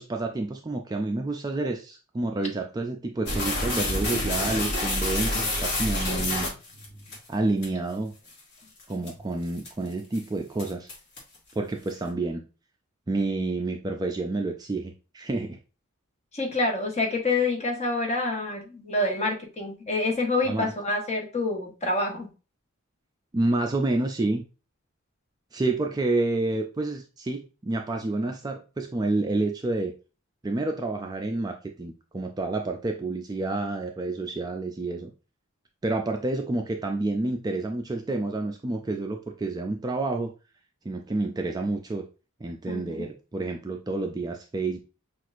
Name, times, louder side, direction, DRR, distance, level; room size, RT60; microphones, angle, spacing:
voice 1, 0.0-6.5 7.3-8.1 8.9-10.9 11.6-12.4 13.1-15.6 20.5-20.7 23.3-24.4 25.5-29.9 30.4-35.1 35.8-40.3 40.9-42.0 42.4-44.8, right 2 dB, 20° right, 3 dB, 0.3 m, -29 dB
sound 1, 3.3-7.2 7.6-7.7 8.3-8.4 8.8-9.1 9.6-9.9 10.1-10.2 10.6-11.4, left 1 dB, 50° left, 1.3 m, -28 dB
voice 2, 16.3-22.3 42.7-43.0, left 2 dB, 30° left, 2 dB, 0.9 m, -27 dB
6.0 x 2.5 x 2.4 m, 0.32 s
head